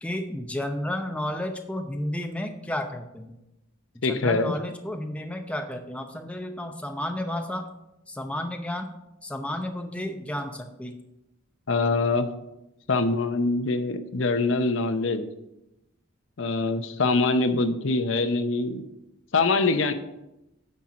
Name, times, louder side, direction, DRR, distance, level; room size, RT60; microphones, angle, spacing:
voice 1, 0.0-3.3 3.9-7.7 8.1-8.9 9.2-11.0, left 1 dB, 5° left, 4 dB, 0.7 m, -32 dB
voice 2, 4.0-4.5 11.7-12.3 12.9-15.2 16.4-18.8 19.3-19.9, left 3 dB, 65° left, 10 dB, 0.7 m, -24 dB
9.6 x 4.4 x 6.2 m, 0.91 s
head